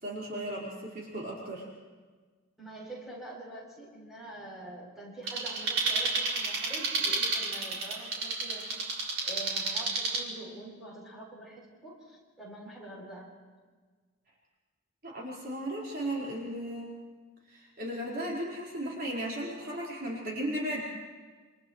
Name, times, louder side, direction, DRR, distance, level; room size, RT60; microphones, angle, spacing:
voice 1, 0.0-1.7 15.0-16.9 17.4-20.8, right 1 dB, 45° right, -5 dB, 4.7 m, -35 dB
voice 2, 2.6-8.6 9.2-13.3, right 2 dB, ahead, -5 dB, 7.8 m, -45 dB
sound 1, 5.3-10.2, right 3 dB, 75° right, 4.3 m, -31 dB
28.5 x 28.5 x 3.2 m, 1.4 s
head